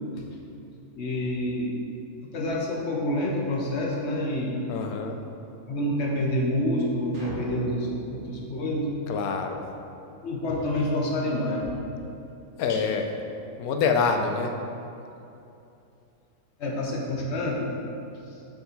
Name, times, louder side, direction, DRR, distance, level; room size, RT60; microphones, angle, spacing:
voice 1, 1.0-1.9 2.3-4.7 5.7-8.9 10.2-11.8 12.7-12.8 16.6-17.7, left 1 dB, 55° left, -2 dB, 1.1 m, -28 dB
voice 2, 4.7-5.2 9.1-9.6 12.6-13.1 13.6-14.5, left 5 dB, 85° left, 4 dB, 1.1 m, -26 dB
sound 1, 7.1-9.7, right 1 dB, 50° right, 1.7 m, -41 dB
7.0 x 3.9 x 3.9 m, 2.7 s
omnidirectional pair, 1.5 m